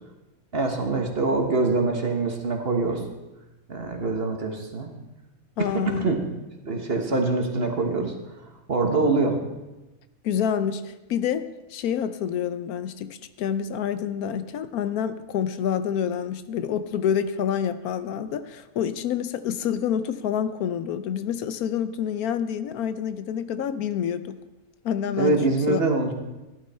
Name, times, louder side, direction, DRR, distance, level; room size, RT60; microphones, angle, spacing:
voice 1, 0.5-3.0 3.7-4.9 5.7-6.2 6.6-8.1 8.7-9.4 25.2-26.1, right 3 dB, 40° right, 3 dB, 1.6 m, -24 dB
voice 2, 5.6-6.1 10.2-24.4 24.8-25.4 25.7-25.9, left 8 dB, 80° left, 12 dB, 1.2 m, -27 dB
15.0 x 11.0 x 4.3 m, 1.1 s
omnidirectional pair, 1.6 m